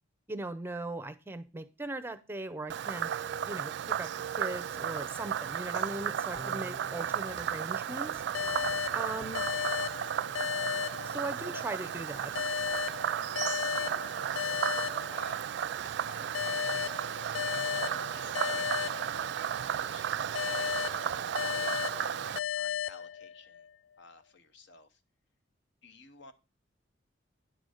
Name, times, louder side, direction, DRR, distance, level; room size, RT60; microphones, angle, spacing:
voice 1, 0.3-3.1 3.5-4.1 4.4-8.2 8.9-9.5 11.0-12.3, right 2 dB, 10° right, 13 dB, 0.5 m, -39 dB
Frog, 2.7-22.4, right 9 dB, 65° right, 0.3 m, -34 dB
sound 1, 6.3-9.7 10.0-10.1, left 1 dB, 25° left, 2.0 m, -52 dB
sound 2, 8.3-11.7 12.4-15.7 16.3-19.7 20.4-23.7, left 8 dB, 80° left, 0.3 m, -35 dB
voice 2, 11.5-11.9 13.7-15.5 15.8-17.1 17.5-18.9 19.6-20.9 21.6-23.7 24.0-25.0 25.8-26.3, left 3 dB, 65° left, 10 dB, 0.9 m, -52 dB
10.0 x 3.9 x 6.4 m, 0.29 s
head